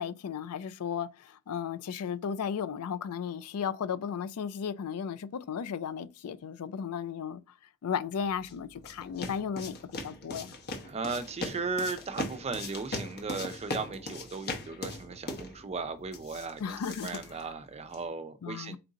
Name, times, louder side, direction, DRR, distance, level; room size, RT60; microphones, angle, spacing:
voice 1, 0.0-7.4 7.8-9.8 10.0-10.5 16.6-17.4 18.4-18.8, left 7 dB, 80° left, 0.4 m, -35 dB
sound 1, 8.1-18.1, left 2 dB, 45° left, 0.9 m, -40 dB
voice 2, 10.8-18.8, right 4 dB, 30° right, 0.5 m, -36 dB
4.5 x 2.5 x 3.9 m
head